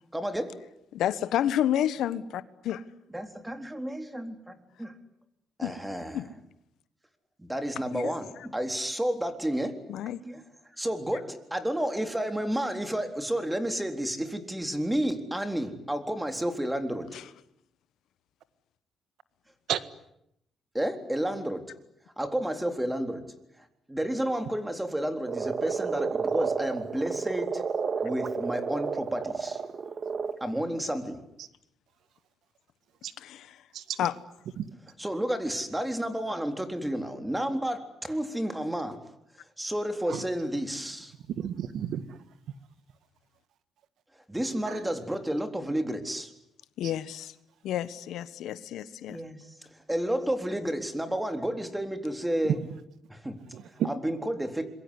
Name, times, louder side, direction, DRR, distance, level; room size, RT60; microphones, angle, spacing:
voice 1, 0.1-0.6 3.1-5.0 5.6-6.2 7.4-9.8 10.2-10.4 10.8-17.1 20.7-21.6 22.2-23.2 23.9-27.6 28.0-29.6 30.4-31.2 35.0-39.0 39.6-41.1 44.3-46.3 49.1-52.6 53.1-53.4 53.9-54.7, right 1 dB, 10° right, 7 dB, 3.8 m, -31 dB
voice 2, 0.9-2.8 5.6-5.7 6.1-6.2 7.9-8.1 9.9-10.2 17.1-17.2 33.2-33.6 34.0-34.1 46.8-47.3 47.6-49.2, left 11 dB, 80° left, 15 dB, 1.4 m, -30 dB
Frog, 25.3-30.4, right 5 dB, 45° right, 2.0 m, -31 dB
voice 3, 33.7-34.1 34.6-34.7 40.1-40.2 41.3-42.2 44.7-44.9 46.8-46.9 52.4-52.6 53.5-53.9, right 10 dB, 75° right, 13 dB, 1.6 m, -32 dB
26.5 x 22.5 x 9.9 m, 0.79 s
cardioid pair, 90°, 0 cm